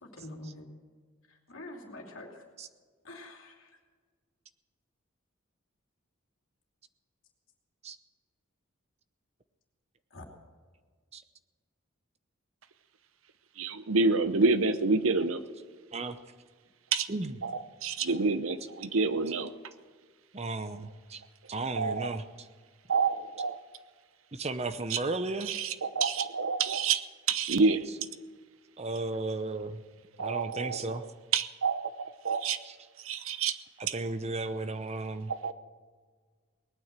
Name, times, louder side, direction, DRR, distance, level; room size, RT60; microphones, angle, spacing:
voice 1, 0.0-0.7 1.5-2.4 3.0-3.7 10.1-10.3, left 1 dB, 70° left, 1 dB, 2.7 m, -45 dB
voice 2, 13.6-15.4 16.9-17.1 17.4-19.5 21.8-22.2 22.9-23.6 24.9-25.0 25.4-27.0 27.3-27.8 30.2-31.0 31.3-32.6 33.0-33.6 33.9-34.0 35.3-35.5, right 4 dB, 75° right, 12 dB, 0.8 m, -28 dB
voice 3, 20.3-21.2 21.5-22.2 24.3-25.6 28.8-29.8 30.2-31.0 33.9-35.3, right 2 dB, 30° right, 10 dB, 0.7 m, -34 dB
19.0 x 9.4 x 7.5 m, 1.5 s
head